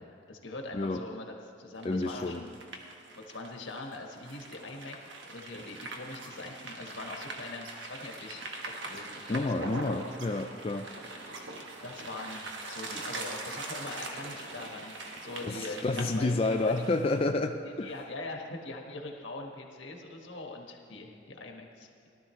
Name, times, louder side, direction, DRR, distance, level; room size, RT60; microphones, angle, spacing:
voice 1, 0.0-2.6 3.2-8.5 8.8-10.2 11.8-16.7 17.6-22.1, left 2 dB, 75° left, 1 dB, 1.5 m, -42 dB
voice 2, 1.8-2.4 9.3-10.9 15.4-17.9, left 2 dB, 30° left, 4 dB, 0.4 m, -29 dB
sound 1, 1.8-17.2, right 2 dB, 65° right, 1.3 m, -42 dB
18.5 x 12.5 x 3.2 m, 2.7 s
head